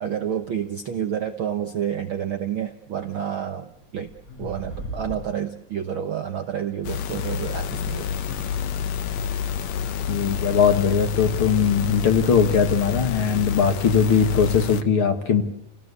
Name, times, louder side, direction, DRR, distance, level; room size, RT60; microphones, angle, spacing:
voice 1, 0.0-4.1 4.4-8.1, right 9 dB, 65° right, 8 dB, 1.3 m, -29 dB
sound 1, 3.1-3.3 4.1-5.4 6.6-6.7 7.7-9.5 11.6-13.1, equal, 30° left, 2.2 m, -39 dB
sound 2, 6.8-14.8, left 7 dB, 65° left, 2.1 m, -28 dB
voice 2, 10.1-15.4, left 6 dB, 50° left, 7 dB, 2.1 m, -20 dB
29.0 x 18.0 x 8.2 m, 0.73 s
omnidirectional pair, 3.6 m